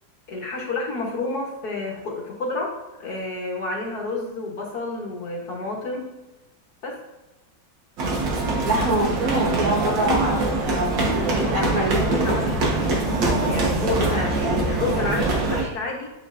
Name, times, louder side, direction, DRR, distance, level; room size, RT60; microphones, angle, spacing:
voice 1, 0.3-6.1 6.8-7.0 11.3-16.1, left 2 dB, 55° left, -2 dB, 1.6 m, -30 dB
sound 1, 8.0-15.6, right 2 dB, 65° right, 1.9 m, -23 dB
voice 2, 8.6-10.9 11.5-12.3, right 1 dB, 50° right, -2 dB, 1.5 m, -24 dB
9.6 x 4.3 x 2.6 m, 1.1 s
omnidirectional pair, 2.2 m